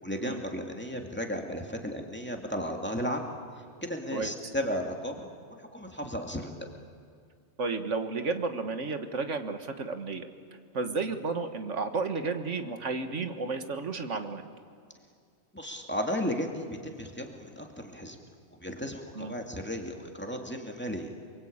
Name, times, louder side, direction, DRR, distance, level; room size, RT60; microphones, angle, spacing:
voice 1, 0.0-3.3 3.8-6.5 15.5-18.2 18.6-21.1, equal, 10° left, 2 dB, 2.4 m, -34 dB
voice 2, 7.6-10.3 10.7-14.4 19.1-19.3, right 4 dB, 85° right, 7 dB, 1.9 m, -32 dB
29.5 x 22.5 x 8.8 m, 2.3 s
omnidirectional pair, 1.2 m